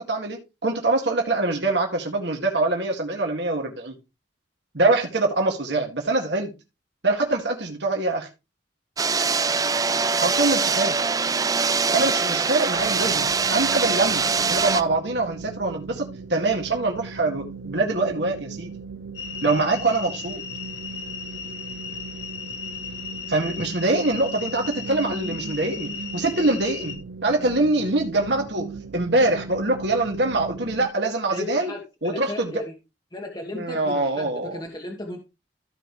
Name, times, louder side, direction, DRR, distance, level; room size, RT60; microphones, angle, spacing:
voice 1, 0.0-4.0 4.7-6.5 7.0-8.3 10.2-11.0 11.9-18.7 19.4-20.4 23.3-31.7 32.0-32.6 33.5-34.6, right 2 dB, 65° right, 2.0 m, -24 dB
sound 1, 9.0-14.8, right 5 dB, 20° right, 0.4 m, -23 dB
sound 2, 12.7-30.9, right 4 dB, 90° right, 0.6 m, -38 dB
sound 3, 19.1-27.0, left 6 dB, 75° left, 2.0 m, -36 dB
voice 2, 31.3-32.7 33.1-35.2, left 1 dB, 25° left, 1.3 m, -35 dB
15.0 x 5.1 x 3.2 m
head